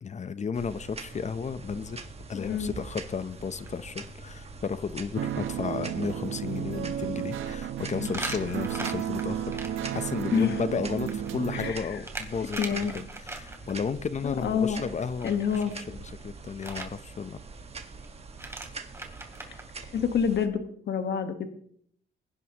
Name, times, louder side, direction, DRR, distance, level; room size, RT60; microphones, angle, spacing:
voice 1, 0.0-17.4, left 5 dB, 35° left, 14 dB, 0.8 m, -34 dB
sound 1, 0.5-20.5, right 4 dB, 30° right, 1.6 m, -44 dB
voice 2, 2.3-2.8 7.9-8.4 10.3-10.7 11.5-12.0 12.6-12.9 14.2-14.8 15.2-15.7 19.5-19.6 19.8-21.5, left 7 dB, 60° left, 7 dB, 1.5 m, -28 dB
sound 2, 3.1-3.3 3.7-3.8 4.3-4.4 4.6-4.7 8.0-9.7 10.9-13.7 15.2-15.7 16.6-16.9 18.0-18.1 18.3-19.6, right 2 dB, 15° right, 2.7 m, -39 dB
sound 3, 5.1-11.7, right 10 dB, 80° right, 1.0 m, -33 dB
22.0 x 10.5 x 3.0 m, 0.64 s
cardioid pair, 90°, 20 cm